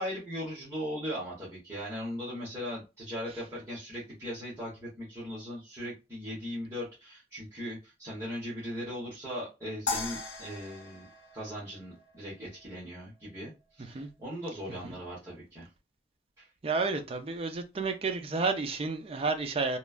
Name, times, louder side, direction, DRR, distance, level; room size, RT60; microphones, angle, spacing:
voice 1, 0.0-11.1 11.3-15.7 16.4-16.5, equal, 15° right, 1.1 m, -39 dB
sound 1, 9.9-12.2, left 4 dB, 85° left, 0.7 m, -37 dB
voice 2, 16.6-19.8, right 4 dB, 35° right, 0.4 m, -31 dB
3.0 x 2.2 x 2.3 m
head